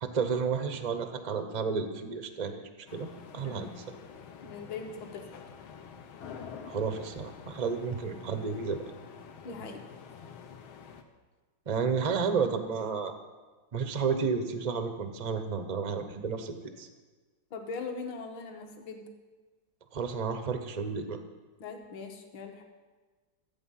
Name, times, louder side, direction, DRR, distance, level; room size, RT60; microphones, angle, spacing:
voice 1, 0.0-2.6 2.9-3.1 3.3-3.8 6.7-8.8 11.7-13.1 13.7-16.9 19.9-21.2, right 5 dB, 85° right, 8 dB, 0.3 m, -31 dB
sound 1, 2.9-11.0, left 7 dB, 90° left, 1.8 m, -48 dB
voice 2, 4.4-5.4 9.4-9.8 17.5-19.1 21.6-22.6, left 4 dB, 70° left, 4 dB, 1.9 m, -41 dB
14.0 x 8.2 x 5.6 m, 1.3 s
omnidirectional pair, 2.2 m